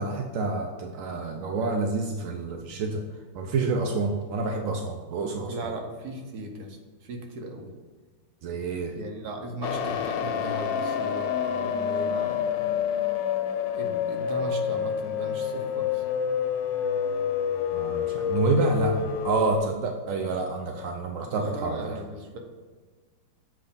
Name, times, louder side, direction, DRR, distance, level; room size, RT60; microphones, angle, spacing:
voice 1, 0.0-3.0 3.3-5.5 8.4-9.0 17.7-22.0, right 3 dB, 80° right, 3 dB, 0.7 m, -28 dB
voice 2, 5.5-7.7 8.9-12.7 13.7-16.0 21.3-22.4, right 1 dB, 60° right, 2 dB, 1.3 m, -37 dB
sound 1, 9.6-19.6, left 8 dB, 75° left, 1.2 m, -28 dB
7.7 x 3.1 x 5.2 m, 1.4 s
omnidirectional pair, 2.1 m